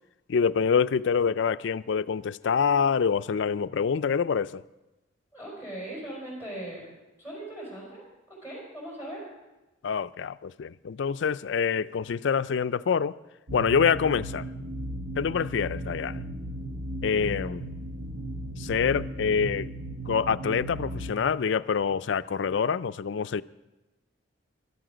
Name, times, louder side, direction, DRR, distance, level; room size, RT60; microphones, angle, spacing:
voice 1, 0.3-4.6 9.8-13.1 13.5-14.5 15.2-16.2 17.0-17.7 18.6-19.7 20.1-23.4, left 6 dB, 65° left, 0.4 m, -26 dB
voice 2, 5.3-6.9 7.2-9.2, right 1 dB, 10° right, 4.9 m, -39 dB
sound 1, 13.5-21.1, right 1 dB, 85° right, 0.9 m, -36 dB
15.5 x 12.0 x 5.0 m
head